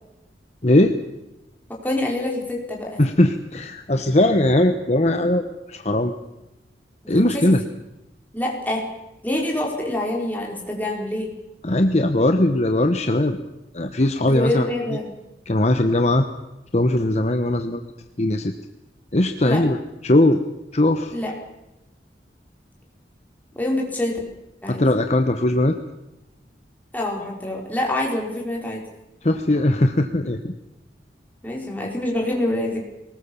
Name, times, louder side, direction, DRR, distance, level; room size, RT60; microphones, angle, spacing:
voice 1, 0.6-0.9 3.0-6.1 7.1-7.6 11.6-13.4 13.7-14.7 15.5-16.2 16.7-17.8 18.2-18.5 19.1-19.8 20.0-20.4 20.7-21.2 24.7-25.8 29.2-30.5, left 1 dB, 40° left, 7 dB, 1.1 m, -19 dB
voice 2, 1.7-3.0 7.1-7.7 8.3-8.8 9.2-11.3 14.2-15.1 19.4-19.6 21.1-21.3 23.5-24.2 24.6-24.8 26.9-28.8 31.4-32.8, left 1 dB, 10° left, -1 dB, 4.9 m, -26 dB
23.0 x 20.0 x 7.1 m, 0.95 s
head